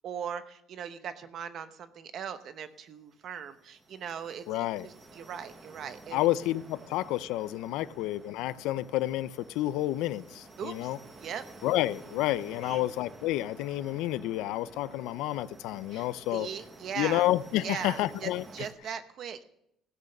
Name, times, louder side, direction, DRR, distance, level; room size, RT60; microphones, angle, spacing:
voice 1, 0.0-6.3 7.8-8.1 10.6-10.9 11.2-11.4 12.6-12.9 15.9-17.3 17.6-19.4, right 7 dB, 40° right, 0.8 m, -39 dB
sound 1, 3.1-18.7, right 3 dB, 20° right, 1.1 m, -51 dB
voice 2, 4.5-4.9 6.1-11.0 11.6-16.5 17.0-18.4, left 15 dB, 80° left, 0.4 m, -30 dB
16.0 x 6.4 x 6.6 m
cardioid pair, 170°, 0 cm